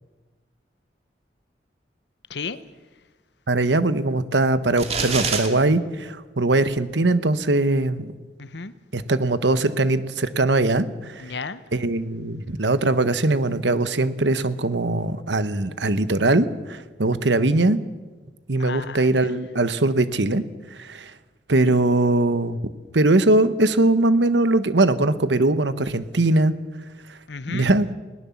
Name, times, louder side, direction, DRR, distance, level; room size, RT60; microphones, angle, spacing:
voice 1, 2.3-2.6 8.4-8.7 11.2-11.6 18.6-19.3 27.3-27.7, left 4 dB, 80° left, 1.0 m, -33 dB
voice 2, 3.5-8.1 8.9-11.3 11.7-17.8 18.5-20.4 20.8-21.1 21.5-22.6 22.9-26.5 27.5-27.9, right 2 dB, 85° right, 1.2 m, -21 dB
sound 1, 4.8-5.5, right 5 dB, 35° right, 2.4 m, -25 dB
21.0 x 18.5 x 7.2 m
head